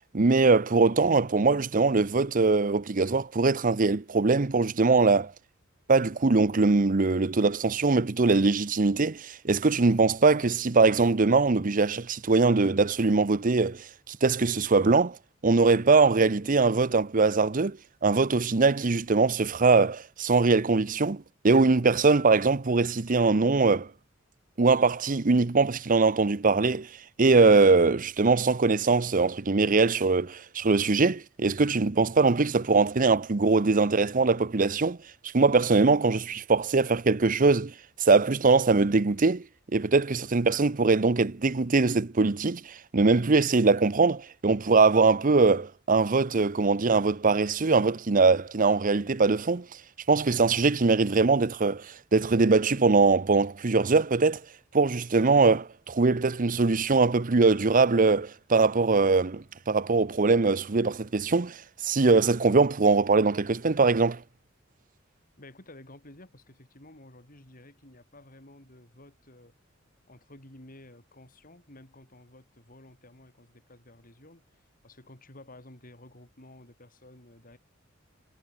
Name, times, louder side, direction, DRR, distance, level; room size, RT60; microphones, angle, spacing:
voice 1, 0.1-5.3 5.9-15.2 15.4-23.9 24.6-26.9 27.2-35.0 35.2-37.7 38.0-39.4 39.7-49.7 50.1-54.4 54.7-64.2, right 3 dB, 45° right, 0.8 m, -22 dB
voice 2, 65.4-69.5 70.1-74.4 74.8-77.6, left 1 dB, 45° left, 6.0 m, -52 dB
head